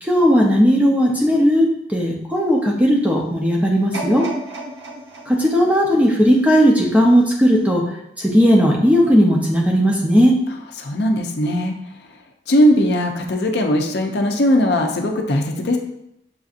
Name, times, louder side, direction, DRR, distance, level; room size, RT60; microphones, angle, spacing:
voice 1, 0.0-4.3 5.3-7.8 8.2-10.3, equal, 10° right, -1 dB, 0.5 m, -16 dB
sound 1, 3.9-7.0 7.5-7.6, right 1 dB, 70° right, 0.9 m, -33 dB
voice 2, 10.8-11.7 12.5-15.8, equal, 60° left, 3 dB, 0.5 m, -19 dB
6.9 x 2.7 x 2.4 m, 0.78 s
head